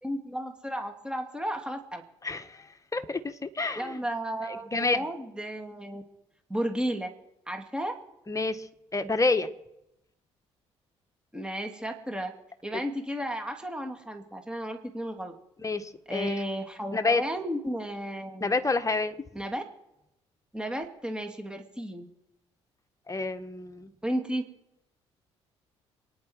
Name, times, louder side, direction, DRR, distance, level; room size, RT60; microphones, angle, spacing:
voice 1, 0.0-2.0 3.8-6.0 6.5-7.1 7.5-7.9 11.3-12.3 12.6-15.3 16.1-18.5 19.3-19.6 20.5-22.1 24.0-24.5, right 1 dB, 5° right, 4 dB, 2.7 m, -33 dB
voice 2, 2.2-4.0 4.5-5.0 8.3-8.7 8.9-9.5 15.6-16.4 16.9-17.2 18.4-19.1 23.1-23.9, left 3 dB, 20° left, 8 dB, 1.6 m, -28 dB
29.5 x 10.5 x 4.8 m, 0.88 s
figure-of-eight pair, 45°, 15 cm